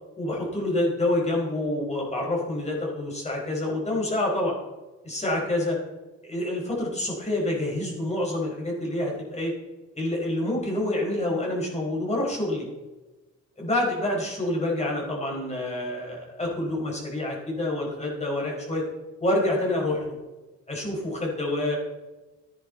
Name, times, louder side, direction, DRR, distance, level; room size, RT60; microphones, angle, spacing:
voice 1, 0.2-4.5 5.0-5.8 6.2-9.5 9.9-12.7 13.6-18.8 19.2-20.2 20.7-21.8, left 1 dB, 20° left, -3 dB, 4.9 m, -27 dB
13.5 x 10.5 x 4.0 m, 1.2 s
cardioid pair, 90°, 30 cm